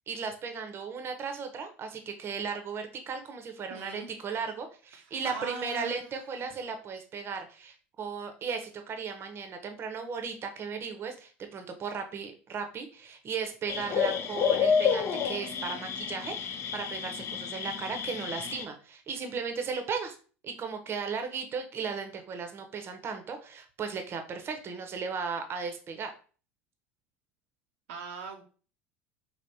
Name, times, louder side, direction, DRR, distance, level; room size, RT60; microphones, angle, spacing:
voice 1, 0.1-20.1 20.4-26.1, right 5 dB, 35° right, 6 dB, 0.7 m, -36 dB
voice 2, 3.7-4.1 5.0-6.0 6.4-6.5 27.9-28.4, right 5 dB, 80° right, 2 dB, 0.5 m, -40 dB
sound 1, 13.7-18.6, left 7 dB, 40° left, 0.4 m, -29 dB
3.4 x 2.4 x 2.7 m, 0.38 s
hypercardioid pair, 80°, 7 cm